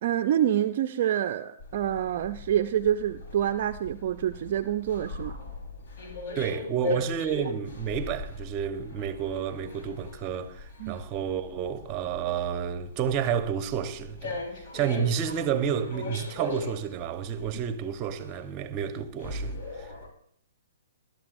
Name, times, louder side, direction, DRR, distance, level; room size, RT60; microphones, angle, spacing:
voice 1, 0.0-5.4 10.8-11.0, right 10 dB, 50° right, 0.6 m, -27 dB
sound 1, 1.6-20.1, left 2 dB, 55° left, 4.3 m, -39 dB
voice 2, 6.3-14.4 14.7-19.9, right 8 dB, 30° right, 1.1 m, -30 dB
20.0 x 12.0 x 2.7 m
hypercardioid pair, 130°, 0 cm